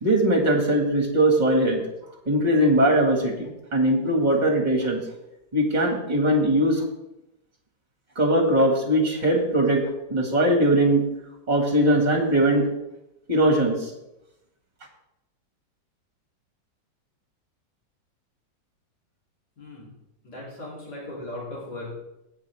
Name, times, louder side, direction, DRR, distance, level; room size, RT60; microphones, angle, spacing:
voice 1, 0.0-1.8 2.3-5.0 5.5-6.8 8.2-9.8 10.1-11.0 11.5-12.7 13.3-13.9, right 1 dB, 25° right, 2 dB, 1.9 m, -20 dB
voice 2, 19.6-19.9 20.2-21.9, left 1 dB, 55° left, -6 dB, 3.8 m, -37 dB
17.5 x 6.3 x 3.5 m, 0.89 s
omnidirectional pair, 2.1 m